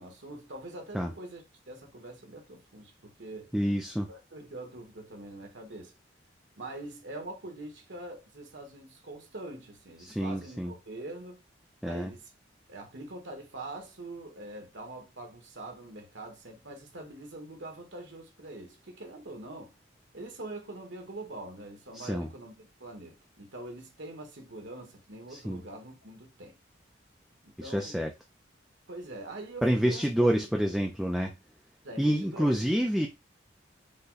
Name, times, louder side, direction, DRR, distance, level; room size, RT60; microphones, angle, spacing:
voice 1, 0.0-3.5 4.1-5.9 6.5-11.4 11.8-12.3 12.7-19.7 20.1-26.6 27.4-28.0 28.9-30.5 31.8-32.6, right 2 dB, 80° right, 1.4 m, -44 dB
voice 2, 3.5-4.1 10.0-10.7 11.8-12.1 21.9-22.3 25.3-25.6 27.6-28.1 29.6-31.3 32.0-33.1, equal, ahead, 0.4 m, -28 dB
5.5 x 2.2 x 3.9 m
head